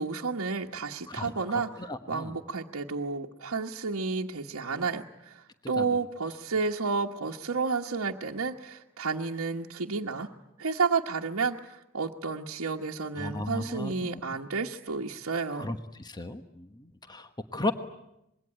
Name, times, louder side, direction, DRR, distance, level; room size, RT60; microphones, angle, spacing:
voice 1, 0.0-1.7 2.1-10.3 10.6-15.7, right 4 dB, 75° right, -3 dB, 1.3 m, -31 dB
voice 2, 1.8-2.3 4.7-4.9 5.8-5.9 13.2-14.2 15.5-17.7, left 2 dB, 20° left, 8 dB, 1.1 m, -35 dB
26.0 x 21.5 x 10.0 m, 0.87 s
head